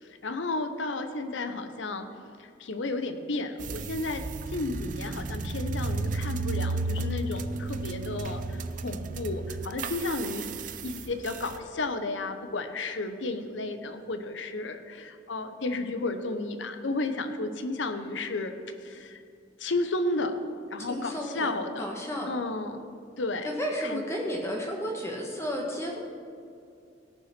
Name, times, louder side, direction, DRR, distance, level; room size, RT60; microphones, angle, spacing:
voice 1, 0.0-2.1 2.4-4.2 4.5-10.5 10.8-18.5 18.8-19.2 19.6-20.4 20.7-21.9 22.3-22.9 23.2-23.5 23.8-24.0, left 2 dB, 80° left, 8 dB, 0.9 m, -32 dB
sound 1, 3.6-11.6, right 3 dB, 45° right, 0.5 m, -33 dB
voice 2, 20.9-21.5 21.8-22.3 23.4-26.0, equal, 15° left, -1 dB, 1.3 m, -32 dB
17.0 x 5.8 x 5.9 m, 2.5 s
head